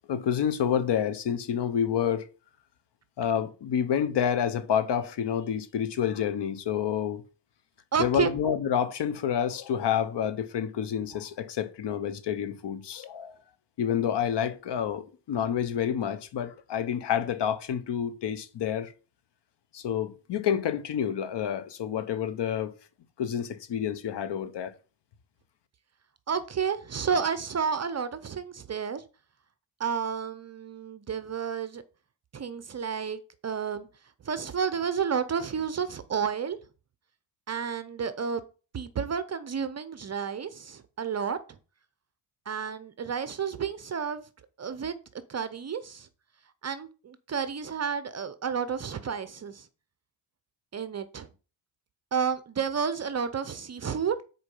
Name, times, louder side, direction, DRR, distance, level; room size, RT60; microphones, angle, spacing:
voice 1, 0.1-2.3 3.2-7.2 8.0-13.3 13.8-18.9 19.7-22.7 23.2-24.7, left 8 dB, 60° left, 1.1 m, -28 dB
voice 2, 7.9-8.3 26.3-29.0 29.8-31.8 32.3-33.9 34.2-36.6 37.5-38.4 38.7-41.4 42.5-44.2 44.6-44.9 45.3-46.1 46.6-49.7 50.7-51.3 52.1-54.2, right 6 dB, 35° right, 0.7 m, -31 dB
6.7 x 4.6 x 5.5 m
cardioid pair, 85°, 47 cm